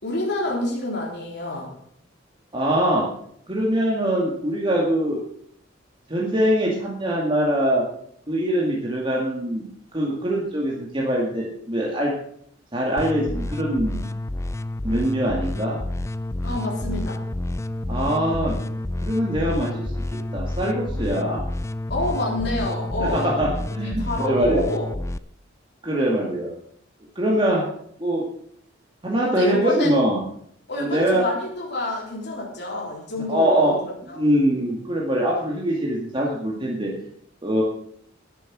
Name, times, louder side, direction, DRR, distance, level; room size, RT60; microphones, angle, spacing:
voice 1, 0.0-1.7 16.4-17.2 21.9-23.3 24.0-24.9 29.2-29.9 30.7-34.3, left 2 dB, 60° left, -3 dB, 3.6 m, -28 dB
voice 2, 2.5-3.1 3.5-5.2 6.1-7.8 8.3-9.6 9.9-12.1 12.7-14.0 14.8-15.8 17.9-18.6 19.0-19.9 20.3-21.4 23.0-24.6 25.8-26.5 27.2-27.7 28.0-28.2 29.0-30.2 30.8-31.2 33.3-33.8 34.0-36.9 37.4-37.6, right 1 dB, 25° right, -3 dB, 2.2 m, -23 dB
sound 1, 13.0-25.2, left 1 dB, 15° left, 0.4 m, -29 dB
11.0 x 10.0 x 6.2 m, 0.67 s
head